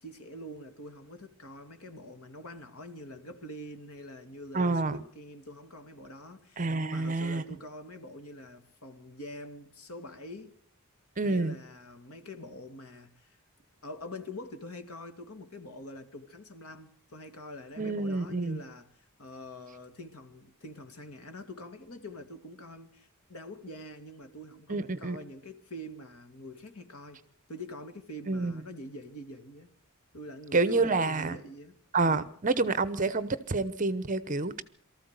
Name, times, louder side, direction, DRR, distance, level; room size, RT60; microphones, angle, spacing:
voice 1, 0.0-10.5 11.2-13.4 13.8-18.9 19.2-27.2 27.5-29.7 30.1-31.8, left 1 dB, 85° left, 2.2 m, -45 dB
voice 2, 4.5-5.0 6.6-7.4 11.2-11.6 17.8-18.6 24.7-25.2 28.3-28.6 30.5-31.4 31.9-34.6, right 3 dB, 35° right, 0.9 m, -28 dB
23.5 x 14.0 x 8.2 m
head